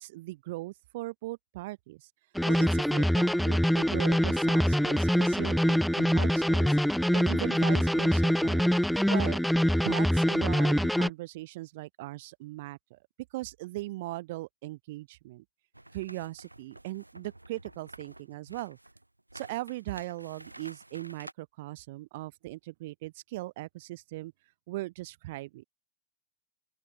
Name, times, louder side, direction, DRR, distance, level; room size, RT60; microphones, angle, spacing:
voice 1, 0.0-2.1 2.5-6.8 7.1-8.7 9.1-9.4 9.7-13.0 13.3-15.4 15.9-18.8 19.3-24.3 24.7-25.6, right 18 dB, 50° right, 2.1 m, -39 dB
sound 1, 2.3-11.1, equal, ahead, 0.6 m, -24 dB
sound 2, 15.7-21.3, right 1 dB, 85° right, 5.7 m, -50 dB
open air
figure-of-eight pair, 90°, 0 cm